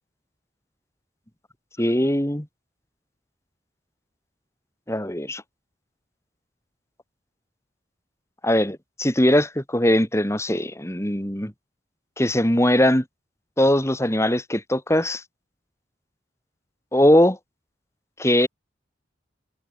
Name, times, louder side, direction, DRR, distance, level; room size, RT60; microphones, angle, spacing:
voice 1, 1.8-2.5 4.9-5.4 8.4-11.5 12.2-13.0 13.6-15.2 16.9-17.4 18.2-18.5, left 1 dB, 15° left, 3.3 m, -20 dB
head